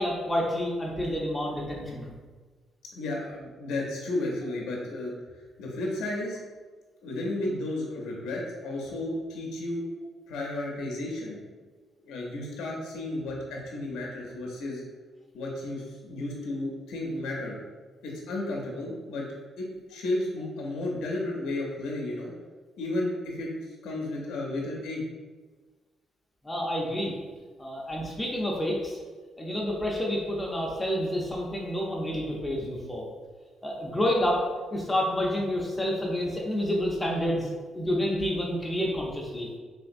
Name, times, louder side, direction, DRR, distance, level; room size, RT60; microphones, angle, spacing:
voice 1, 0.0-2.1 26.4-27.1 27.6-29.0 29.4-33.1 33.6-39.5, left 1 dB, 15° left, -2 dB, 0.5 m, -29 dB
voice 2, 2.9-5.1 5.6-6.4 7.0-9.8 10.3-11.4 12.0-14.8 15.3-17.6 18.0-19.2 19.6-22.3 22.8-23.5 23.8-25.0, left 2 dB, 90° left, -2 dB, 0.5 m, -33 dB
3.2 x 2.8 x 2.5 m, 1.4 s
cardioid pair, 90°, 0 cm